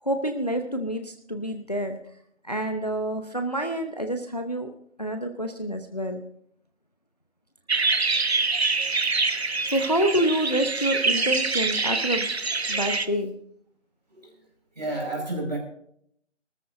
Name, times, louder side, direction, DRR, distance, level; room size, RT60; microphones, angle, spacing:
voice 1, 0.0-2.0 2.4-4.7 5.0-6.2 9.7-12.3 12.7-13.3, right 1 dB, 35° left, 6 dB, 0.8 m, -27 dB
sound 1, 7.7-13.1, right 3 dB, 60° right, 0.9 m, -25 dB
voice 2, 14.8-15.6, right 2 dB, 35° right, -1 dB, 5.3 m, -30 dB
23.5 x 13.5 x 2.6 m, 0.68 s
figure-of-eight pair, 175°, 36 cm